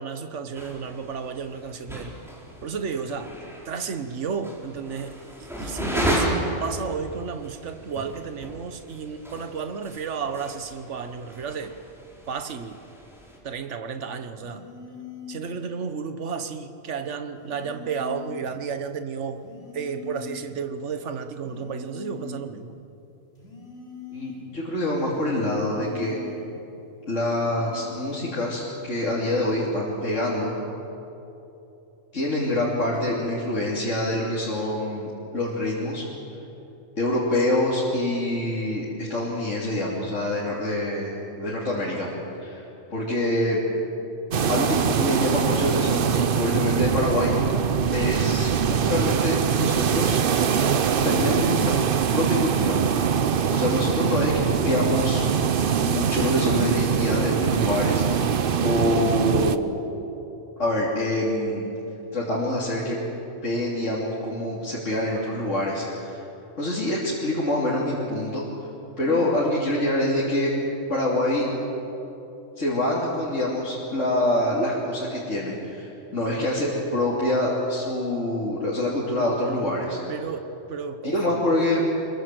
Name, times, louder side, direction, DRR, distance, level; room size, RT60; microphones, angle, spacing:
voice 1, 0.0-2.2 2.6-3.4 3.6-11.7 12.3-12.8 13.4-14.6 15.3-19.5 19.7-22.8 69.1-69.3 80.1-81.4, right 6 dB, 65° right, 8 dB, 1.5 m, -32 dB
sound 1, 0.5-13.4, equal, ahead, 4.3 m, -34 dB
sound 2, 14.4-15.5 17.4-18.5 19.4-20.5 21.4-22.5 23.4-24.5 25.4-26.5 27.4-28.5 29.4-29.7, left 7 dB, 55° left, 4.7 m, -42 dB
voice 2, 24.1-26.2 27.1-30.5 32.1-36.0 37.0-42.1 42.4-42.7 42.9-43.6 44.5-50.2 51.0-51.7 52.1-52.8 53.5-55.2 55.8-58.3 58.6-59.8 60.6-61.7 62.1-63.0 63.4-66.2 66.6-68.4 69.0-70.5 70.9-71.5 72.6-80.0 81.0-81.8, left 1 dB, 70° left, -6 dB, 3.5 m, -25 dB
sound 3, 44.3-59.6, right 7 dB, 50° right, 0.9 m, -23 dB
25.5 x 22.5 x 7.7 m, 3.0 s
omnidirectional pair, 1.3 m